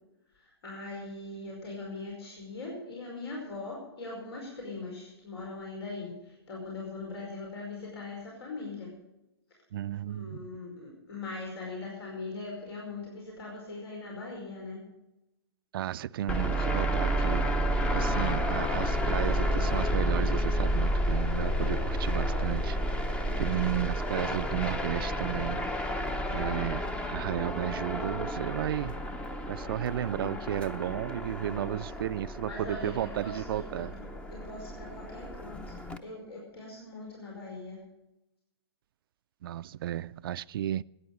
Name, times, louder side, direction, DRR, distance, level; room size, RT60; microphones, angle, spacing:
voice 1, 0.3-8.9 10.0-14.8 18.0-18.1 23.2-23.7 26.3-26.6 30.1-30.4 31.4-31.8 32.5-37.8, left 3 dB, 70° left, 5.2 m, -41 dB
voice 2, 9.7-10.5 15.7-17.5 17.9-22.8 23.4-29.0 29.5-34.0 39.4-40.8, right 12 dB, 60° right, 0.4 m, -33 dB
sound 1, 16.3-36.0, equal, 10° left, 0.7 m, -31 dB
14.0 x 9.7 x 6.8 m
hypercardioid pair, 140°, 14 cm